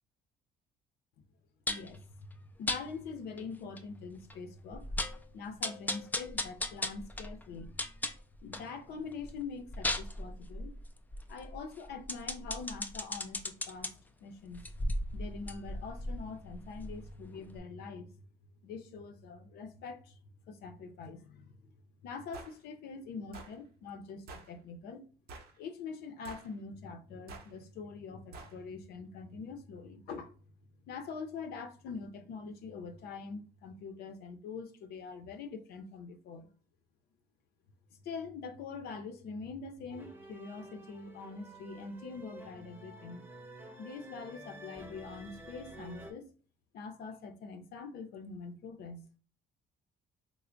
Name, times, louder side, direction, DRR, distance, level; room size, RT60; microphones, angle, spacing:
voice 1, 1.7-2.3 2.6-4.9 5.3-7.8 8.4-10.7 11.3-18.3 18.6-20.2 20.5-21.7 22.0-25.1 25.6-30.3 30.8-36.5 37.9-43.3 43.8-46.3 46.7-49.1, left 4 dB, 70° left, 0.6 m, -44 dB
sound 1, 1.7-2.0 2.7-2.8 3.4-3.5 3.8-3.9 4.3-4.4 4.7-5.2 5.6-8.7 9.1-13.9 14.5-17.2 17.5-17.6, left 1 dB, 10° left, 0.3 m, -37 dB
sound 2, 22.3-22.6 23.3-23.5 24.3-24.5 25.3-25.6 26.2-26.5 27.3-27.5 28.3-28.6, right 3 dB, 65° right, 0.7 m, -48 dB
sound 3, 39.9-46.1, right 1 dB, 10° right, 0.8 m, -50 dB
3.3 x 2.0 x 3.7 m
cardioid pair, 110°, 17 cm